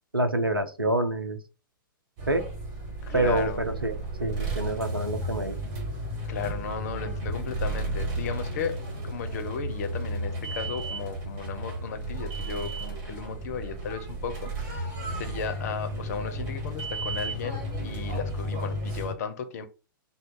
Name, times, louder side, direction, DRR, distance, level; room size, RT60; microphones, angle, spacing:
voice 1, 0.1-1.4 2.3-2.4 3.1-5.6, right 1 dB, 85° right, 0.7 m, -27 dB
sound 1, 2.2-19.1, right 1 dB, 35° right, 1.5 m, -33 dB
voice 2, 3.0-3.6 6.3-8.8 9.0-19.7, left 6 dB, 45° left, 0.6 m, -35 dB
3.4 x 2.0 x 3.7 m
figure-of-eight pair, 110°, 12 cm